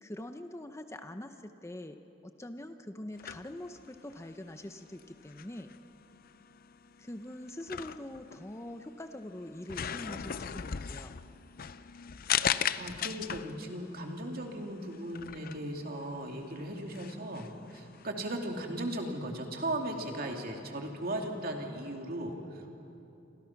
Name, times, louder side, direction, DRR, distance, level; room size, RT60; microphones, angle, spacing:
voice 1, 0.0-2.0 2.2-5.7 7.0-11.1, left 1 dB, 15° left, 7 dB, 0.8 m, -44 dB
sound 1, 3.1-18.1, left 8 dB, 50° left, 0.6 m, -39 dB
voice 2, 12.4-22.7, right 1 dB, 50° right, 2 dB, 2.7 m, -37 dB
29.0 x 26.0 x 6.0 m, 2.8 s
head